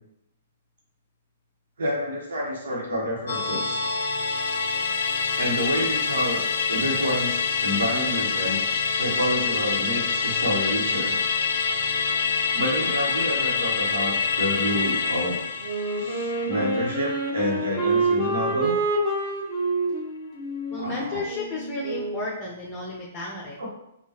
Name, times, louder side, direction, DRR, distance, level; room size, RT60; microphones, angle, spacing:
voice 1, 1.8-3.8 5.4-6.4 6.7-8.6 8.9-11.1 12.5-15.4 16.0-18.8 20.8-21.2 23.6-23.7, equal, 65° right, -3 dB, 1.2 m, -28 dB
Musical instrument, 3.3-18.0 18.3-18.4, left 5 dB, 60° left, 0.4 m, -26 dB
Wind instrument woodwind instrument, 15.6-22.3, right 2 dB, 10° right, 1.2 m, -27 dB
voice 2, 20.7-23.6, left 2 dB, 15° left, -3 dB, 0.8 m, -33 dB
5.4 x 2.4 x 3.0 m, 0.82 s
figure-of-eight pair, 115°, 0 cm